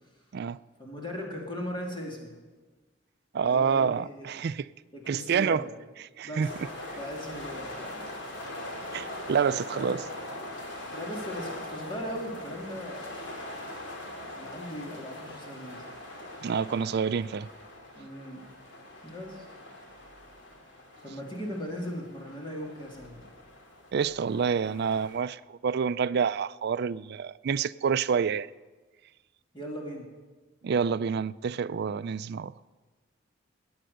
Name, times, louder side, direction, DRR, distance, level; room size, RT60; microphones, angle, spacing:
voice 1, 0.8-2.3 3.4-4.3 4.9-5.7 6.2-6.5 6.9-8.0 9.7-10.0 10.9-13.2 14.3-15.9 17.9-18.5 19.0-19.5 21.0-23.2 29.5-30.1, equal, 25° left, 2.7 m, -38 dB
voice 2, 3.3-4.6 5.1-5.6 6.2-6.5 8.9-10.0 16.4-17.5 23.9-28.5 30.6-32.5, right 6 dB, 55° right, 0.4 m, -28 dB
sound 1, 6.4-25.2, left 1 dB, 65° left, 2.8 m, -42 dB
21.0 x 8.9 x 6.6 m
head